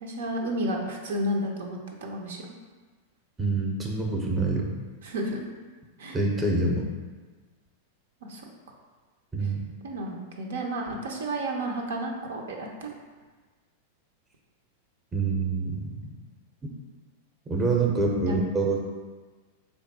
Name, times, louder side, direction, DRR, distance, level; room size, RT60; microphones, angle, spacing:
voice 1, 0.0-2.5 5.0-5.4 6.0-6.2 8.2-8.4 9.8-12.9 18.1-18.4, right 1 dB, 80° right, 1 dB, 0.5 m, -32 dB
voice 2, 3.4-4.7 6.1-6.9 9.3-9.6 15.1-16.0 17.5-18.8, right 3 dB, 15° right, 0 dB, 0.6 m, -26 dB
3.4 x 2.2 x 4.1 m, 1.4 s
hypercardioid pair, 115°, 0 cm